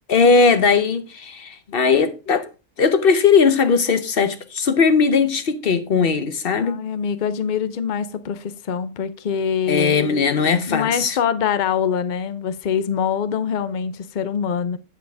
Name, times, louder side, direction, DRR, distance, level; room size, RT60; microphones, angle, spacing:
voice 1, 0.1-2.4 2.8-6.8 9.7-11.2, left 5 dB, 45° left, 1.0 m, -18 dB
voice 2, 6.5-10.0 10.7-14.8, left 7 dB, 70° left, 0.4 m, -24 dB
8.4 x 7.4 x 3.4 m
omnidirectional pair, 1.6 m